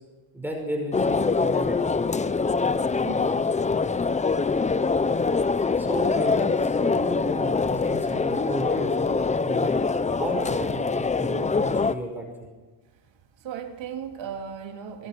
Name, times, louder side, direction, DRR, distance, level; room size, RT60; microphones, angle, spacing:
voice 1, 0.3-2.0 5.8-9.8 10.2-12.5, right 1 dB, 5° right, 1 dB, 5.6 m, -33 dB
sound 1, 0.9-11.9, left 4 dB, 15° left, 0.6 m, -24 dB
voice 2, 2.9-3.6 13.4-15.1, right 7 dB, 70° right, 3 dB, 3.3 m, -37 dB
27.5 x 21.5 x 6.1 m, 1.2 s
cardioid pair, 125°, 47 cm